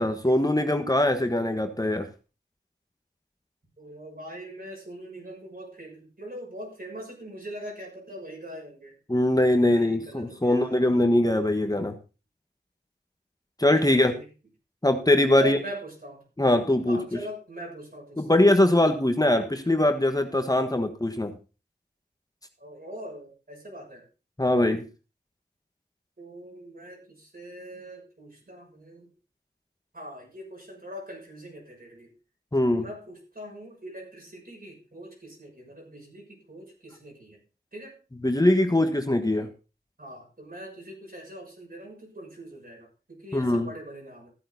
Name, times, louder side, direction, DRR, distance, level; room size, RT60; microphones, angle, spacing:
voice 1, 0.0-2.1 9.1-11.9 13.6-14.2 14.8-15.6 16.4-17.2 18.2-21.3 24.4-24.8 32.5-32.9 38.2-39.5 43.3-43.7, left 1 dB, 20° left, 6 dB, 1.3 m, -22 dB
voice 2, 3.8-8.9 9.6-10.8 13.9-14.3 15.4-16.2 16.9-18.4 22.6-24.0 26.2-29.1 29.9-32.1 32.8-37.4 37.7-37.9 40.0-44.3, equal, 55° right, -1 dB, 6.6 m, -42 dB
14.0 x 8.8 x 4.0 m, 0.33 s
wide cardioid pair, 55°, 18 cm